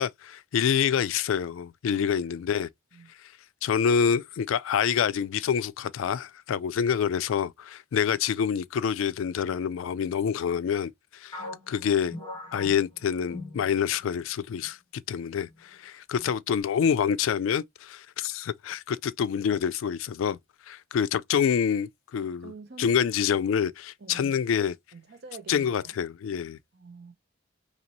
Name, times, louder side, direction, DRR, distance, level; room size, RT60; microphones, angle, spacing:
voice 1, 0.0-2.7 3.6-12.2 12.5-14.8 15.1-20.4 20.7-22.5 22.8-24.8 25.5-26.6, left 7 dB, 75° left, 0.3 m, -27 dB
sound 1, 11.3-14.2 14.5-14.7 15.3-15.8, left 2 dB, 25° left, 1.3 m, -41 dB
voice 2, 11.4-11.8 16.2-16.3 22.2-23.0 23.3-23.4 24.0-24.4 24.9-25.9 26.7-27.1, right 4 dB, 55° right, 0.8 m, -46 dB
4.1 x 2.9 x 2.9 m
head